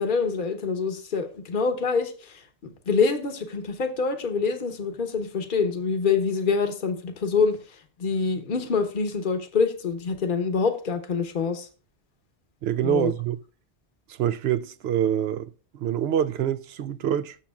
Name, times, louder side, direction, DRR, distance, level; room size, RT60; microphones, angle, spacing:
voice 1, 0.0-7.6 8.0-11.7 12.8-13.1, left 5 dB, 50° left, 1.1 m, -26 dB
voice 2, 12.6-13.4 14.1-17.4, right 9 dB, 75° right, 0.8 m, -26 dB
12.5 x 7.1 x 2.4 m
omnidirectional pair, 1.1 m